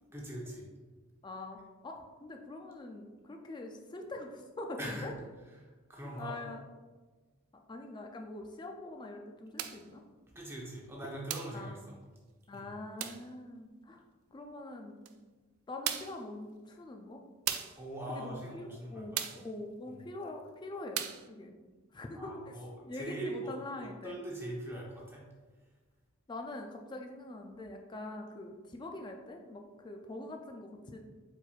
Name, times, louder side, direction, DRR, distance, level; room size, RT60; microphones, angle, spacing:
voice 1, 0.1-0.6 4.8-5.1 5.6-6.4 10.3-12.0 12.5-12.7 17.8-19.2 22.2-22.7 22.9-25.2, right 1 dB, 10° right, -3 dB, 0.8 m, -42 dB
voice 2, 1.2-5.1 6.0-6.6 7.7-10.0 11.5-11.8 12.5-14.0 14.3-15.1 15.7-17.2 18.1-21.5 21.9-22.5 22.8-24.2 26.3-31.0, left 2 dB, 20° left, 3 dB, 0.3 m, -44 dB
sound 1, 9.6-9.9 11.3-11.6 13.0-13.3 15.0-15.1 15.8-16.2 17.5-17.8 19.1-19.5 20.9-21.3, right 10 dB, 80° right, 0.3 m, -36 dB
4.4 x 4.3 x 2.4 m, 1.3 s
head